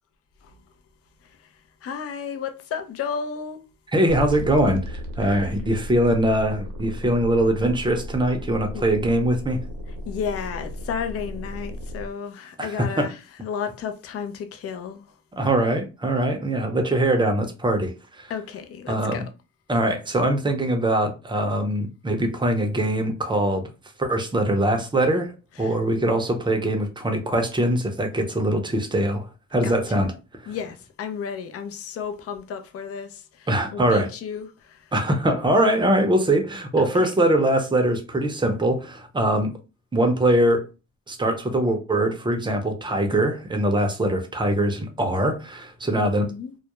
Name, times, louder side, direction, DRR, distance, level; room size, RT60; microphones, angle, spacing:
voice 1, 1.8-3.6 5.2-5.4 8.7-8.8 10.1-15.1 18.3-19.2 25.6-25.7 29.6-30.1 30.5-34.9 36.8-36.9 46.0-46.5, left 7 dB, 50° left, 0.5 m, -33 dB
voice 2, 3.9-9.6 12.6-13.1 15.4-18.3 18.9-19.2 19.7-23.7 24.0-25.3 25.6-30.1 30.4-30.5 33.5-34.1 34.9-39.5 39.9-40.7 41.1-46.3, right 1 dB, 15° right, 0.6 m, -22 dB
sound 1, 4.1-12.1, left 1 dB, 90° right, 0.7 m, -35 dB
2.3 x 2.0 x 2.9 m
cardioid pair, 90°, 30 cm